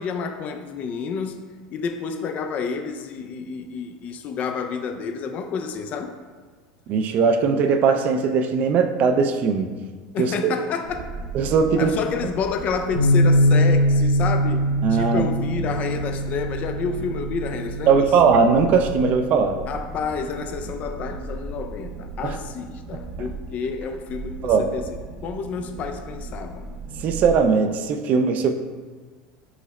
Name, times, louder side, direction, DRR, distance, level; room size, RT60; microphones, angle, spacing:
voice 1, 0.0-1.4 1.7-6.2 10.1-11.1 11.8-18.0 19.7-24.8 25.2-26.7, left 5 dB, 45° left, 0.3 m, -29 dB
voice 2, 6.9-9.7 10.2-10.5 11.3-12.0 14.8-15.3 17.9-19.5 22.2-22.3 24.4-24.7 27.0-28.5, right 5 dB, 45° right, 0.3 m, -19 dB
sound 1, 10.8-27.4, right 3 dB, 70° right, 0.7 m, -37 dB
sound 2, 13.0-19.2, equal, 85° left, 0.8 m, -22 dB
4.7 x 2.0 x 4.2 m
supercardioid pair, 105°, 4 cm